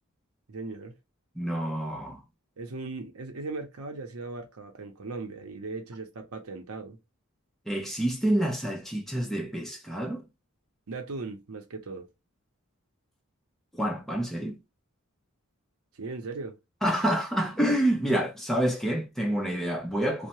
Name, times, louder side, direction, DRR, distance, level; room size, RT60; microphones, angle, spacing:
voice 1, 0.5-0.9 2.6-7.0 10.9-12.1 15.9-16.6, right 3 dB, 90° right, 0.7 m, -38 dB
voice 2, 1.3-2.2 7.7-10.3 13.7-14.6 16.8-20.3, right 1 dB, ahead, 0.6 m, -28 dB
2.7 x 2.1 x 3.0 m
head